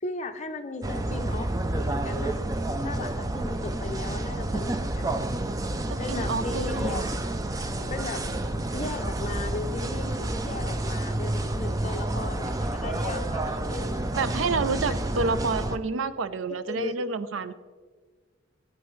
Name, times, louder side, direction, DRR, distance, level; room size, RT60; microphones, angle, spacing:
voice 1, 0.0-2.5 2.8-5.1 6.0-7.1 7.9-8.3 8.7-14.2 16.7-17.0, left 3 dB, 35° left, 7 dB, 0.6 m, -36 dB
sound 1, 0.8-15.8, right 1 dB, 15° right, 0.4 m, -29 dB
voice 2, 5.9-7.0 14.2-17.5, right 4 dB, 80° right, 13 dB, 0.5 m, -29 dB
13.5 x 8.6 x 3.2 m, 1.5 s
head